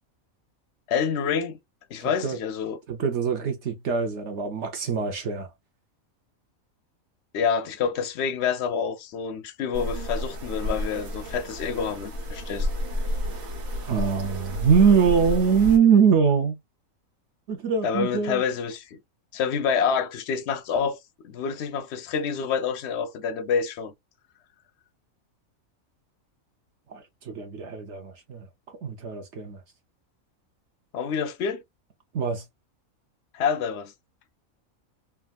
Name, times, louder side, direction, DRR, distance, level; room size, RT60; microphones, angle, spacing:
voice 1, 0.9-1.6 1.9-2.8 7.3-12.7 17.8-19.0 19.3-21.0 21.2-23.9 30.9-31.6 33.3-33.9, left 6 dB, 65° left, 0.7 m, -27 dB
voice 2, 2.0-2.4 2.9-5.5 13.9-16.5 17.5-18.4 26.9-29.6 32.1-32.4, right 6 dB, 65° right, 0.9 m, -23 dB
sound 1, 9.7-15.8, left 1 dB, 85° right, 1.5 m, -31 dB
3.5 x 2.2 x 2.3 m
omnidirectional pair, 1.4 m